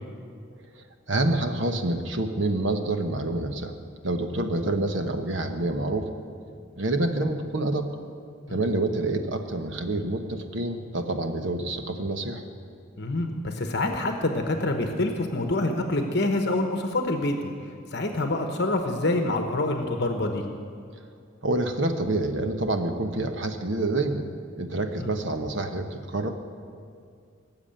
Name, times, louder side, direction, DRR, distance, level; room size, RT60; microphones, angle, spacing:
voice 1, 0.7-3.7 4.0-6.1 6.8-7.9 8.5-12.4 21.4-24.3 24.6-26.3, right 2 dB, 65° right, 6 dB, 1.1 m, -27 dB
voice 2, 13.0-17.4 17.9-20.4 25.0-25.1, left 2 dB, 55° left, 4 dB, 1.0 m, -26 dB
19.0 x 7.3 x 8.9 m, 2.3 s
head